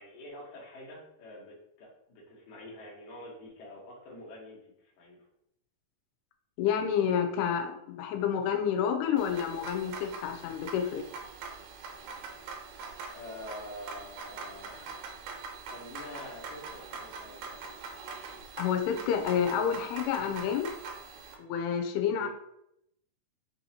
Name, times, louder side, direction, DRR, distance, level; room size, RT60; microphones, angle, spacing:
voice 1, 0.0-5.3 13.1-14.9 15.7-17.8 22.1-22.3, left 1 dB, 65° left, -3 dB, 2.1 m, -46 dB
voice 2, 6.6-11.0 18.6-20.7 21.4-22.3, left 8 dB, 90° left, 4 dB, 2.6 m, -29 dB
sound 1, 9.2-21.3, right 4 dB, 90° right, 2.6 m, -43 dB
5.9 x 2.7 x 2.8 m, 0.78 s
omnidirectional pair, 4.4 m